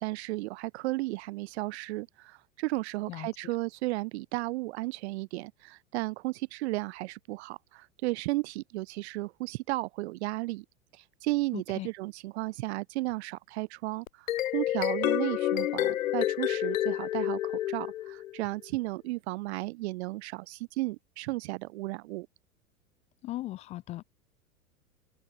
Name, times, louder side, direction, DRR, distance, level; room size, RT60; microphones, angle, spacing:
voice 1, 0.0-10.6 10.9-14.3 14.5-22.3, right 21 dB, 50° right, 0.7 m, -34 dB
voice 2, 3.1-3.5 11.5-11.9 23.2-24.0, left 16 dB, 15° left, 0.3 m, -38 dB
sound 1, 14.1-18.4, left 13 dB, 70° left, 0.9 m, -29 dB
hypercardioid pair, 95°, 42 cm